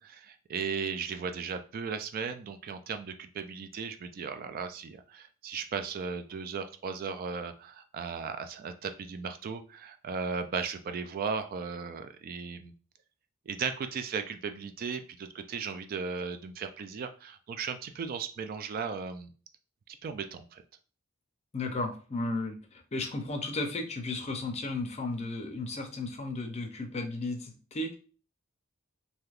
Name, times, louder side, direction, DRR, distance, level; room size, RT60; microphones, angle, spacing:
voice 1, 0.0-12.7 13.5-19.3 19.9-20.6, right 5 dB, 45° right, 8 dB, 0.3 m, -36 dB
voice 2, 21.5-28.0, left 2 dB, 30° left, 5 dB, 0.5 m, -34 dB
3.3 x 2.7 x 2.4 m, 0.38 s
head